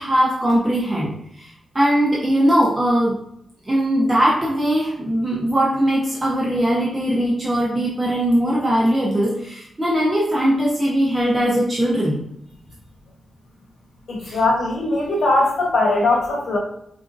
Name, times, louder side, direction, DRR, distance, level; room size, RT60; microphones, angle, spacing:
voice 1, 0.0-3.1 3.7-12.2 14.2-14.4, equal, 25° right, -5 dB, 0.7 m, -20 dB
voice 2, 14.1-16.6, left 2 dB, 70° left, -2 dB, 0.9 m, -20 dB
4.1 x 2.6 x 2.4 m, 0.71 s
cardioid pair, 85°, 0 cm